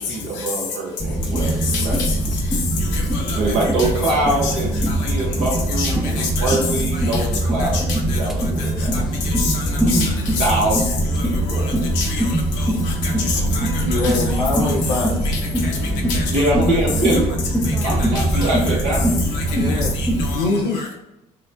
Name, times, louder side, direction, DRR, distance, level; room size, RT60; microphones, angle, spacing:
voice 1, 0.1-2.0 3.3-7.8 8.1-8.9 9.8-10.1 10.4-11.9 16.3-17.3 17.8-19.1, right 2 dB, 60° right, -4 dB, 1.1 m, -24 dB
sound 1, 1.0-20.3, right 1 dB, ahead, 0.4 m, -22 dB
voice 2, 1.4-1.8 2.9-3.4 3.8-3.9 4.4-4.5 5.8-6.6 7.1-7.3 7.7-8.2 8.9-10.4 11.2-11.3 12.0-12.3 12.6-14.2 15.6-15.7 16.1-16.4 18.1-18.6 19.3-20.4 20.7-20.9, left 5 dB, 60° left, -1 dB, 0.9 m, -28 dB
Race car auto racing / Alarm, 12.3-18.5, right 4 dB, 90° right, 0.5 m, -35 dB
voice 3, 13.8-15.3 19.5-19.9 20.3-20.9, left 3 dB, 90° left, -3 dB, 0.4 m, -23 dB
4.5 x 2.1 x 2.5 m, 0.91 s
figure-of-eight pair, 55°, 21 cm